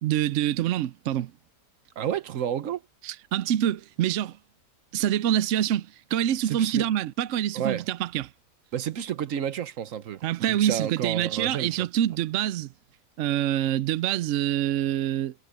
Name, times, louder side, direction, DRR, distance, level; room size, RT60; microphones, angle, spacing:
voice 1, 0.0-1.3 3.0-4.4 4.9-8.3 10.2-12.7 13.2-15.3, right 11 dB, 75° right, 0.7 m, -26 dB
voice 2, 2.0-2.8 6.4-6.9 7.5-7.9 8.7-11.9, right 9 dB, 55° right, 1.1 m, -31 dB
omnidirectional pair, 1.8 m